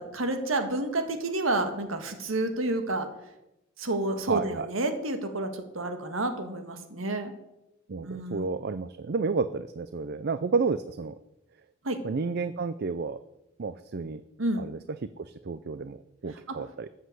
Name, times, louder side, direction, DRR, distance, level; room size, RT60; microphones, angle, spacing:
voice 1, 0.0-3.1 3.8-7.3 8.0-8.5 11.8-12.0 14.4-14.7 16.5-16.6, right 2 dB, 80° right, 7 dB, 1.7 m, -30 dB
voice 2, 4.3-4.7 7.9-11.2 12.0-13.2 13.6-14.2 14.6-14.8 15.2-16.0 16.2-16.9, right 4 dB, 55° right, 13 dB, 0.5 m, -31 dB
13.5 x 8.0 x 7.8 m, 0.91 s
head